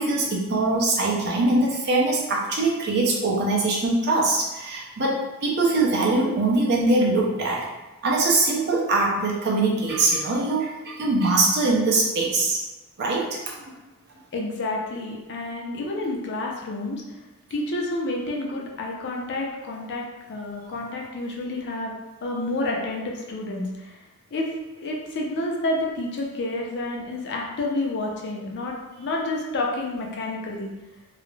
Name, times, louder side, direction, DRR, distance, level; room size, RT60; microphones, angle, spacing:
voice 1, 0.0-7.7 8.0-12.6 13.0-13.7 20.7-20.8, right 2 dB, 50° right, -2 dB, 0.5 m, -22 dB
voice 2, 14.3-17.0 17.5-20.0 20.3-21.9 22.2-24.0 24.3-24.5 24.8-30.7, left 2 dB, 50° left, -1 dB, 0.5 m, -29 dB
2.4 x 2.0 x 3.1 m, 1.1 s
head